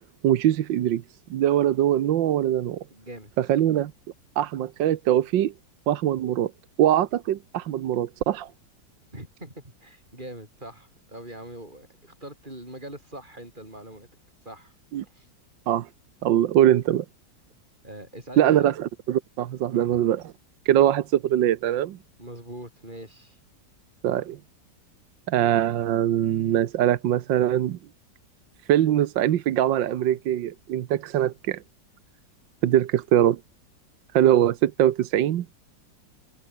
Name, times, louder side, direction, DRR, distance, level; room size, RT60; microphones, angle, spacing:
voice 1, 0.2-1.0 1.3-2.8 3.4-3.9 4.4-5.5 5.9-6.5 6.8-8.5 14.9-15.0 15.7-15.9 16.2-17.0 18.4-20.2 20.7-22.0 24.0-24.4 25.3-27.8 28.7-31.6 32.6-33.4 34.1-35.5, right 11 dB, 80° right, 1.6 m, -22 dB
voice 2, 2.9-3.3 9.1-14.1 14.4-14.7 15.1-15.3 17.8-18.7 19.6-20.1 22.2-23.4, right 1 dB, 25° right, 8.3 m, -42 dB
omnidirectional pair, 2.0 m